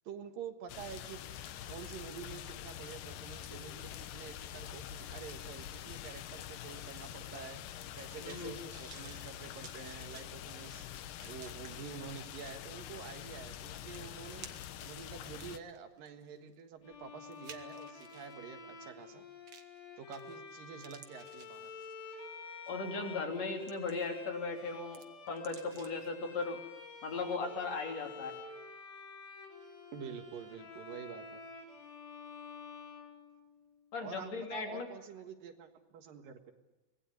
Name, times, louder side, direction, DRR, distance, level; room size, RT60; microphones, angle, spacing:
voice 1, 0.1-1.2 1.7-7.6 8.0-10.9 11.2-14.5 14.8-19.3 20.0-21.7 29.9-31.4 34.0-36.5, right 7 dB, 75° right, 7 dB, 3.2 m, -48 dB
sound 1, 0.7-15.6, left 11 dB, 75° left, 2.6 m, -46 dB
sound 2, 7.9-11.7 12.2-12.3 13.5-13.6 13.9-14.8 15.3-18.4 19.5-19.8 20.1-20.5 20.8-22.1 22.7-22.9 23.4-24.2 24.6-26.1 26.4-26.5, right 6 dB, 45° right, 1.7 m, -56 dB
voice 2, 8.2-8.5 22.7-26.6 27.0-28.4 33.9-34.9, left 4 dB, 50° left, 4 dB, 4.3 m, -37 dB
Bowed string instrument, 16.8-33.8, left 3 dB, 90° left, 5.9 m, -49 dB
25.5 x 20.0 x 9.7 m, 1.1 s
omnidirectional pair, 4.1 m